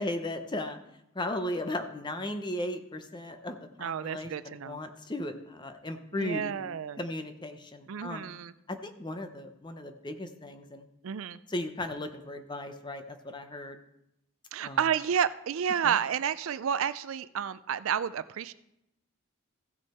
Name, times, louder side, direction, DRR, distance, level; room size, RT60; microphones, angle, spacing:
voice 1, 0.0-6.5 7.0-8.3 8.7-10.9 11.5-13.8 14.6-14.8 15.8-16.0, left 1 dB, 20° left, 7 dB, 0.7 m, -36 dB
voice 2, 3.8-4.8 6.1-7.0 7.9-8.5 11.0-11.4 14.5-18.5, right 8 dB, 70° right, 15 dB, 0.4 m, -30 dB
15.5 x 6.3 x 4.3 m, 0.85 s
head